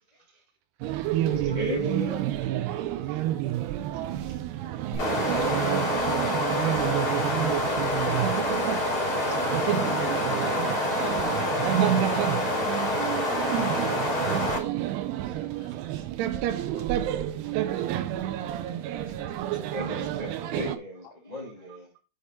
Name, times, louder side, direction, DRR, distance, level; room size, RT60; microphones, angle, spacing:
voice 1, 0.1-0.4 1.3-2.5 2.8-3.2 4.2-4.4 17.4-17.5 19.7-21.9, equal, 60° left, 0.4 m, -37 dB
voice 2, 0.8-1.2 19.2-19.6, right 11 dB, 70° right, 2.7 m, -53 dB
sound 1, 0.8-20.8, right 12 dB, 90° right, 2.3 m, -29 dB
sound 2, 4.9-14.6, left 1 dB, 25° left, 2.2 m, -27 dB
voice 3, 15.4-15.9 16.4-16.9 19.0-19.3, left 9 dB, 80° left, 2.5 m, -56 dB
8.5 x 4.7 x 4.4 m
omnidirectional pair, 5.7 m